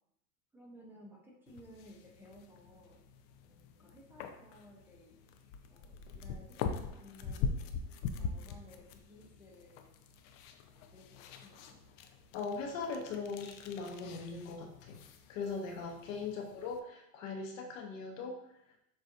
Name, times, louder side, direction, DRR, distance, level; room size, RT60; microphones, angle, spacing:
voice 1, 0.5-3.0 3.4-5.2 5.7-7.6 8.1-9.9 10.7-11.8 16.3-16.4, left 1 dB, 5° right, -3 dB, 0.8 m, -57 dB
sound 1, 1.5-16.8, left 5 dB, 40° left, 0.4 m, -43 dB
voice 2, 12.3-15.0 15.3-18.4, left 4 dB, 60° left, 2 dB, 0.9 m, -40 dB
6.6 x 2.5 x 2.6 m, 0.78 s
hypercardioid pair, 105°, 46 cm